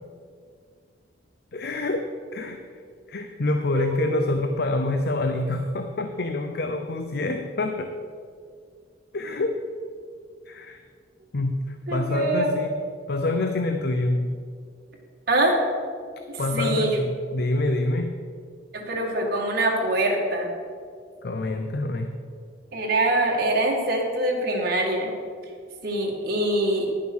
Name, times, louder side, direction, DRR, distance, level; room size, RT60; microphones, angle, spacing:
voice 1, 1.5-2.6 3.1-8.0 9.1-9.6 10.5-10.8 11.3-12.7 13.1-14.4 16.4-18.1 21.2-22.2, left 2 dB, 55° left, 7 dB, 0.6 m, -26 dB
voice 2, 3.7-4.1 11.9-12.5 15.3-15.6 16.3-16.9 18.7-20.5 22.7-25.1 25.8-26.9, right 1 dB, 55° right, -1 dB, 1.8 m, -24 dB
10.5 x 7.1 x 6.1 m, 2.2 s
head